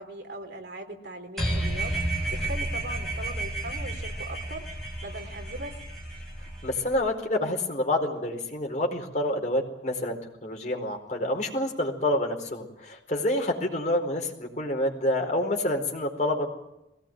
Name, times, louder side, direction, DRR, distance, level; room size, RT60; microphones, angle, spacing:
voice 1, 0.0-4.6 5.0-5.7, right 1 dB, 65° right, 4 dB, 3.8 m, -40 dB
sound 1, 1.4-7.0, right 1 dB, ahead, 6.4 m, -31 dB
voice 2, 6.6-16.5, left 1 dB, 40° left, 2 dB, 4.5 m, -28 dB
22.0 x 18.0 x 9.0 m, 0.88 s
head